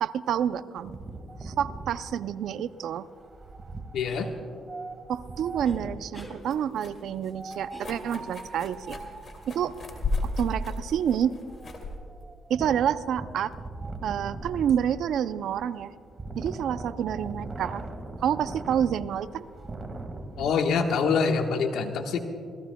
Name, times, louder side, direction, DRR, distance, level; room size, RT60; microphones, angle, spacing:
voice 1, 0.0-1.0 1.4-3.1 5.1-9.0 9.5-9.7 10.2-11.3 12.5-13.5 14.0-15.9 16.4-17.8 18.2-19.4, right 9 dB, 75° right, 14 dB, 0.5 m, -28 dB
Wind, 0.8-6.2 7.3-20.5, right 2 dB, 30° right, 1.7 m, -41 dB
voice 2, 3.9-4.3 20.4-22.2, left 5 dB, 80° left, 5 dB, 1.3 m, -25 dB
sound 1, 4.1-4.3 5.6-5.8 6.1-6.4 7.7-8.4, equal, 10° left, 3.0 m, -45 dB
sound 2, 6.0-13.4, left 2 dB, 45° left, 2.6 m, -36 dB
27.5 x 17.0 x 2.2 m, 2.3 s
cardioid pair, 90°, 0 cm